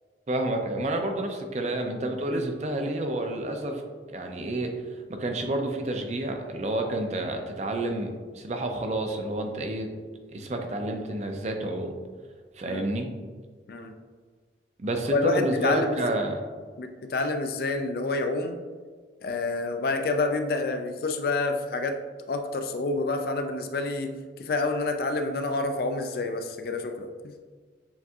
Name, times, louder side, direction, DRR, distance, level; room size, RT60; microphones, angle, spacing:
voice 1, 0.3-3.8 4.1-4.7 5.1-9.9 10.3-11.9 12.6-13.1 14.8-16.4, right 1 dB, 40° right, 4 dB, 0.4 m, -29 dB
voice 2, 15.1-16.0 16.8-18.6 19.2-22.0 22.3-27.3, left 3 dB, 55° left, 6 dB, 0.3 m, -28 dB
7.0 x 2.6 x 2.3 m, 1.5 s
head